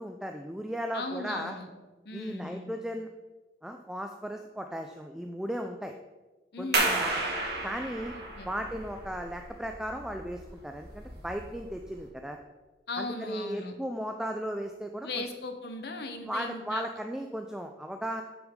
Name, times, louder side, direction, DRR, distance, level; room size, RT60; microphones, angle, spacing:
voice 1, 0.0-1.5 2.1-3.1 3.6-5.9 6.6-7.2 7.6-8.1 8.4-12.4 13.0-15.2 16.2-18.2, equal, 5° right, 4 dB, 0.3 m, -36 dB
voice 2, 0.9-1.7 2.0-2.7 6.5-7.0 8.1-8.5 12.9-13.7 15.0-16.9, left 3 dB, 65° left, 7 dB, 0.9 m, -38 dB
sound 1, 6.7-12.1, right 2 dB, 65° right, 1.8 m, -33 dB
8.6 x 6.1 x 3.7 m, 1.2 s
head